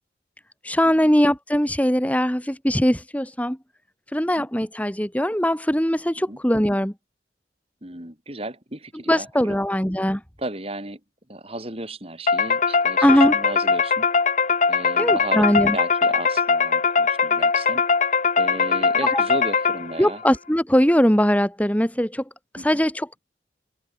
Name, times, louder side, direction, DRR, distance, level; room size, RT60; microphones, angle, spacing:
voice 1, 0.6-3.6 4.1-6.9 9.1-10.2 13.0-13.3 15.0-15.8 19.0-19.2 20.0-22.2 22.6-23.2, equal, 10° left, 2.7 m, -21 dB
voice 2, 7.8-9.6 10.4-11.0 11.3-14.1 14.7-17.8 18.4-20.2 22.6-22.8, right 1 dB, 35° right, 5.5 m, -34 dB
sound 1, 12.3-20.1, left 5 dB, 40° left, 1.1 m, -21 dB
head